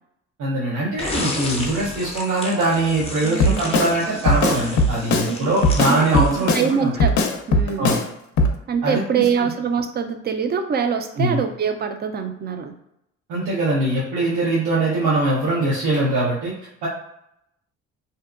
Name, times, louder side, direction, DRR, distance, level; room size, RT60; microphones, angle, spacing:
voice 1, 0.4-6.9 7.8-8.0 8.8-9.0 9.4-9.5 11.2-11.4 13.3-16.5 16.8-16.9, right 2 dB, 85° right, -7 dB, 0.7 m, -22 dB
sound 1, 1.0-6.9, left 2 dB, 20° left, 0.5 m, -33 dB
voice 2, 3.2-3.7 5.2-6.3 6.5-7.9 8.7-12.7, right 6 dB, 35° right, 7 dB, 0.4 m, -24 dB
Drum kit, 3.4-3.9 4.3-5.3 5.6-6.7 7.0-8.0 8.4-8.5, left 2 dB, 70° left, 0.5 m, -19 dB
2.7 x 2.2 x 2.4 m, 0.80 s
cardioid pair, 90°, 30 cm